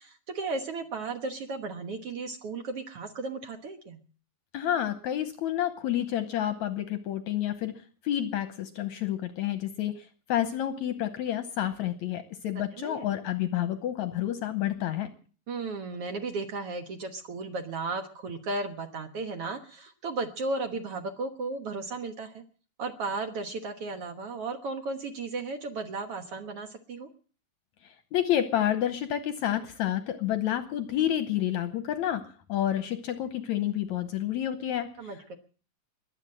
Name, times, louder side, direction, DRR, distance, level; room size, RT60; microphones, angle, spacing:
voice 1, 0.0-4.0 12.8-13.1 15.5-22.4 22.8-27.1 35.0-35.4, right 3 dB, 60° right, 7 dB, 1.7 m, -35 dB
voice 2, 4.5-7.7 8.0-15.1 27.8-34.9, left 11 dB, 70° left, 11 dB, 1.9 m, -29 dB
22.0 x 8.3 x 7.5 m, 0.41 s
omnidirectional pair, 4.1 m